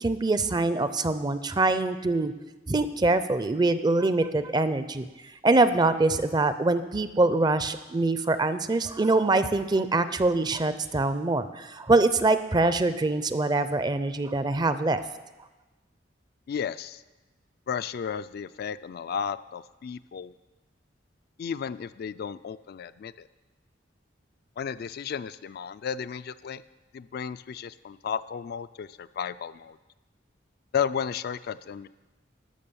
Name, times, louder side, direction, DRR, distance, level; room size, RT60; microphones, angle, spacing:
voice 1, 0.0-2.3 2.7-5.0 5.4-15.0, right 2 dB, 25° right, 12 dB, 0.5 m, -24 dB
voice 2, 16.5-17.0 17.7-20.3 21.4-23.3 24.6-26.6 26.9-29.8 30.7-31.9, left 7 dB, 55° left, 13 dB, 0.3 m, -33 dB
12.5 x 6.1 x 6.9 m, 1.1 s
head